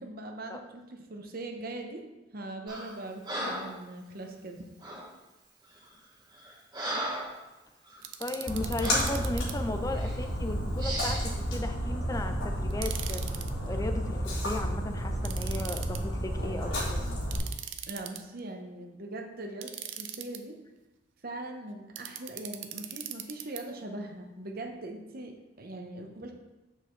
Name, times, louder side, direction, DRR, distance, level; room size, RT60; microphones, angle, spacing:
voice 1, 0.0-2.0 2.3-4.6 17.9-20.6 21.2-26.3, right 2 dB, 50° right, 4 dB, 0.9 m, -41 dB
Breathing, 2.7-2.9 3.2-3.8 4.8-5.1 5.7-5.9 6.3-7.4 7.8-8.0 8.8-9.2 9.9-10.1 10.8-11.3, right 1 dB, 25° right, 2.0 m, -36 dB
sound 1, 8.0-9.5 12.7-13.5 15.2-16.0 17.3-18.4 19.6-20.4 22.0-23.6, right 11 dB, 70° right, 0.6 m, -40 dB
voice 2, 8.2-13.2 13.7-17.0, left 2 dB, 15° left, 7 dB, 0.5 m, -36 dB
Splash splatter, 8.5-17.4, equal, 80° left, 2.7 m, -31 dB
7.8 x 6.5 x 3.2 m, 1.1 s
head